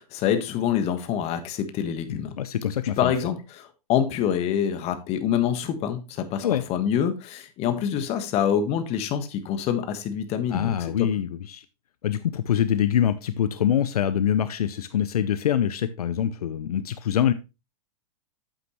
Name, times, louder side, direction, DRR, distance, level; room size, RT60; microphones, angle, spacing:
voice 1, 0.0-2.4 3.0-11.1, left 9 dB, 35° left, 1.3 m, -26 dB
voice 2, 2.1-3.1 6.4-6.6 10.5-11.6 12.0-17.3, left 9 dB, 75° left, 0.7 m, -24 dB
8.7 x 7.8 x 3.0 m
hypercardioid pair, 120°, 19 cm